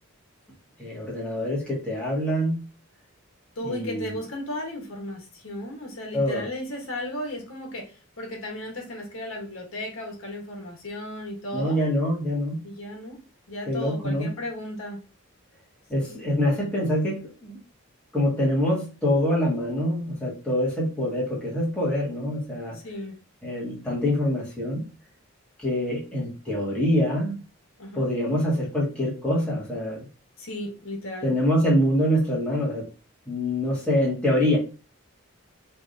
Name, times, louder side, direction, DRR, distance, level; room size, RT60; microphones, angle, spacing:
voice 1, 0.8-2.6 3.6-4.1 6.1-6.4 11.5-12.6 13.7-14.3 15.9-17.6 18.1-22.8 23.4-24.8 25.6-27.3 27.9-30.0 31.2-32.9 33.3-34.6, left 1 dB, 5° left, -6 dB, 1.9 m, -25 dB
voice 2, 3.5-11.8 12.6-13.2 13.5-15.0 16.0-16.2 22.7-23.2 27.8-28.1 30.4-31.3, left 1 dB, 70° left, 0 dB, 1.5 m, -35 dB
5.2 x 3.4 x 2.8 m, 0.33 s
head